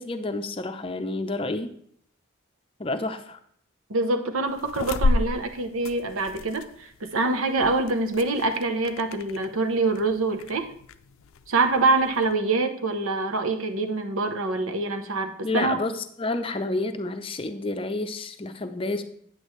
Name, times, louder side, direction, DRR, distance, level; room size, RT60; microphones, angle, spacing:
voice 1, 0.0-1.7 2.8-3.4 15.4-19.0, left 2 dB, 25° left, 8 dB, 0.6 m, -29 dB
voice 2, 3.9-10.7 11.5-15.8, right 3 dB, 85° right, 7 dB, 0.9 m, -25 dB
sound 1, 4.5-12.3, left 2 dB, 80° left, 0.4 m, -32 dB
9.0 x 8.3 x 3.2 m, 0.64 s
head